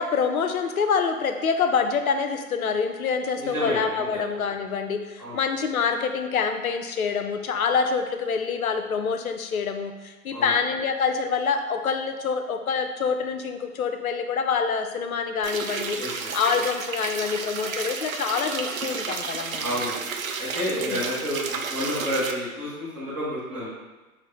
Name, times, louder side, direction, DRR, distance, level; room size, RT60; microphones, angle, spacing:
voice 1, 0.0-16.0 16.3-19.7 20.7-21.0, left 5 dB, 70° left, 7 dB, 0.6 m, -26 dB
voice 2, 3.4-4.2 5.2-5.4 10.3-10.5 16.0-16.3 19.6-20.0 20.4-23.7, equal, 5° right, -12 dB, 0.4 m, -30 dB
sound 1, 15.4-22.3, right 5 dB, 65° right, 0.5 m, -32 dB
6.2 x 2.1 x 3.0 m, 1.2 s
figure-of-eight pair, 110°, 44 cm